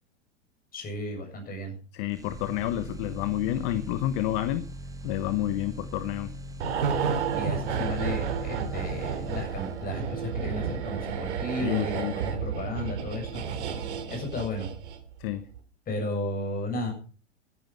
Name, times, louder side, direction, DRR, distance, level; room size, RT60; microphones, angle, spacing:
voice 1, 0.7-1.8 7.3-13.4 14.1-14.7 15.9-16.9, left 1 dB, 25° left, 4 dB, 7.1 m, -34 dB
voice 2, 1.9-4.7 5.0-6.3 11.6-12.1 15.2-15.5, left 13 dB, 45° left, 13 dB, 1.2 m, -29 dB
sound 1, 2.1-10.1, equal, 10° right, 1.5 m, -41 dB
sound 2, 6.6-15.1 15.4-15.6, right 6 dB, 65° right, 3.0 m, -31 dB
14.0 x 11.5 x 5.7 m, 0.38 s
hypercardioid pair, 105°, 37 cm